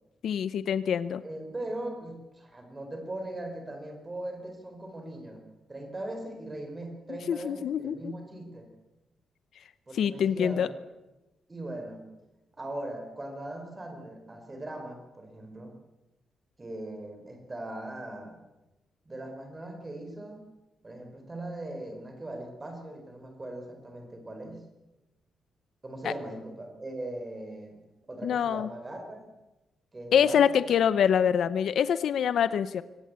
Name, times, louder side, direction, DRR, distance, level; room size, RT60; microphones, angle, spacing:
voice 1, 0.2-1.2 7.1-8.1 9.9-10.7 26.0-26.1 28.2-28.7 30.1-32.8, left 8 dB, 60° left, 14 dB, 0.9 m, -25 dB
voice 2, 1.2-8.7 9.9-10.7 11.5-12.1 12.6-15.7 16.6-18.4 19.0-20.5 20.8-24.6 25.8-27.8 28.1-29.2 29.9-30.7, right 1 dB, 15° right, 5 dB, 4.6 m, -40 dB
24.0 x 18.0 x 8.3 m, 1.0 s
wide cardioid pair, 170°, 0 cm